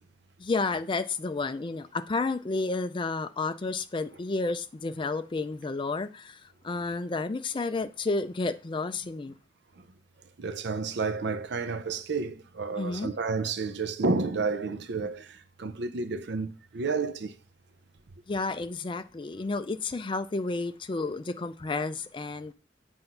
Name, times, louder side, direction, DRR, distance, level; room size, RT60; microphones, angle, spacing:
voice 1, 0.4-9.3 12.8-13.1 18.3-22.5, left 3 dB, 25° left, 0.4 m, -31 dB
voice 2, 10.4-15.3 15.6-17.3, right 4 dB, 60° right, 0.5 m, -30 dB
7.7 x 2.6 x 5.6 m
head